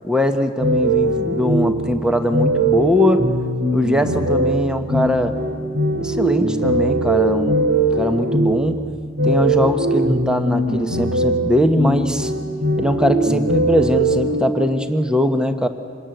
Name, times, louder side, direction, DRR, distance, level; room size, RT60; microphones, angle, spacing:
voice 1, 0.0-3.3 3.7-5.4 6.0-7.6 7.9-8.8 9.2-12.3 12.8-15.7, equal, 5° right, 8 dB, 1.1 m, -20 dB
sound 1, 0.6-14.3, right 1 dB, 70° right, 3.2 m, -20 dB
26.5 x 20.5 x 9.1 m, 2.1 s
head